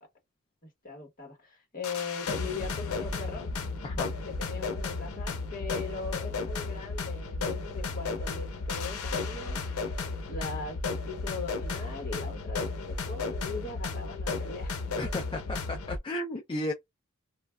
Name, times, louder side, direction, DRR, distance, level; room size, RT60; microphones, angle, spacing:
voice 1, 0.8-3.5 4.3-9.6 10.3-10.8 11.1-15.2, left 4 dB, 40° left, 1.5 m, -40 dB
sound 1, 1.8-16.0, left 3 dB, 80° left, 0.7 m, -34 dB
voice 2, 15.0-16.7, left 1 dB, 25° left, 0.4 m, -34 dB
3.0 x 2.3 x 2.3 m
head